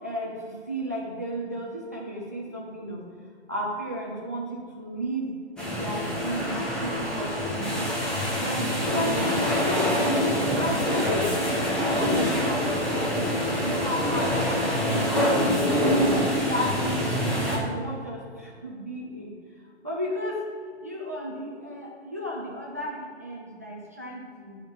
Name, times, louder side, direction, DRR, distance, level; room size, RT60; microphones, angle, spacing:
voice 1, 0.0-3.0 3.5-5.3 5.7-7.9 8.4-10.2 10.6-15.0 15.6-17.1 17.5-19.3 19.8-20.4 20.8-24.6, equal, 15° right, -3 dB, 0.3 m, -34 dB
sound 1, 5.6-17.6, equal, ahead, 0.8 m, -25 dB
10.0 x 3.6 x 6.0 m, 2.1 s
figure-of-eight pair, 140°, 34 cm